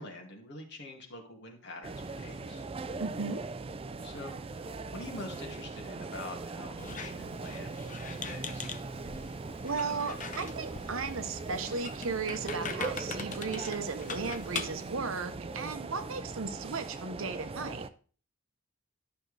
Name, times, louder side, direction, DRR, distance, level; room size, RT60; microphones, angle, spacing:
voice 1, 0.0-2.7 4.0-8.8, left 2 dB, 55° left, 1 dB, 2.1 m, -46 dB
sound 1, 1.8-17.9, right 3 dB, 25° right, 0.4 m, -40 dB
voice 2, 3.0-3.4 9.6-17.8, right 4 dB, 70° right, 10 dB, 0.9 m, -35 dB
Squeak, 6.8-14.9, left 5 dB, 40° left, 0.8 m, -42 dB
11.5 x 6.4 x 3.3 m, 0.41 s
head